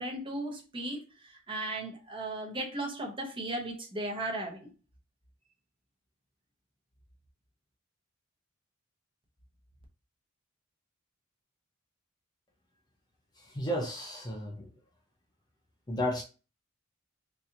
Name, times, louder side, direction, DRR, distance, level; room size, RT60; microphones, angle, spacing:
voice 1, 0.0-4.7, right 1 dB, 25° right, 0 dB, 0.9 m, -36 dB
voice 2, 13.5-14.7 15.9-16.2, equal, 20° left, 0 dB, 0.5 m, -33 dB
4.1 x 2.7 x 2.5 m, 0.34 s
head